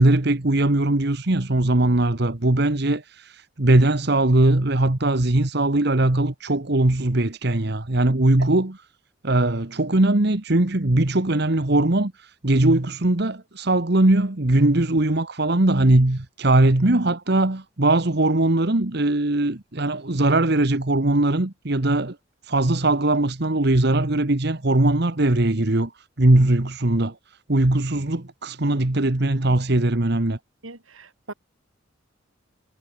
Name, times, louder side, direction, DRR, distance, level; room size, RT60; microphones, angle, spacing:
voice 1, 0.0-8.8 9.2-22.2 22.4-25.9 26.2-27.2 27.5-30.4, right 2 dB, 55° right, 1.4 m, -20 dB
voice 2, 30.6-31.3, right 2 dB, 85° right, 5.1 m, -40 dB
head